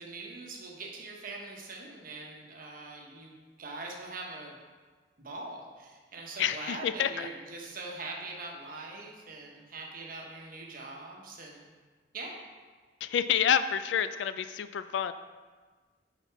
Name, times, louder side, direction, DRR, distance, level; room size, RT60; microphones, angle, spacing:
voice 1, 0.0-4.6 5.2-11.6 12.1-12.4, right 3 dB, 50° right, 0 dB, 1.0 m, -42 dB
voice 2, 6.4-7.3 13.0-15.1, left 8 dB, 70° left, 12 dB, 0.3 m, -28 dB
6.9 x 4.1 x 4.6 m, 1.4 s
head